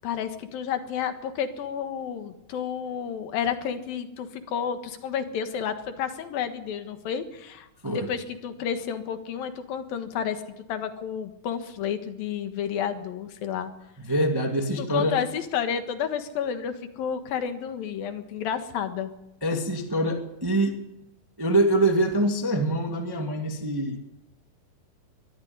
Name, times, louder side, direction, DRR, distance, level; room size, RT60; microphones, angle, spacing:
voice 1, 0.0-13.7 14.8-19.1, left 8 dB, 75° left, 8 dB, 3.2 m, -31 dB
voice 2, 14.0-15.2 19.4-20.8 21.4-24.0, right 1 dB, 10° right, 4 dB, 1.0 m, -24 dB
23.0 x 13.5 x 9.5 m, 0.87 s
omnidirectional pair, 4.2 m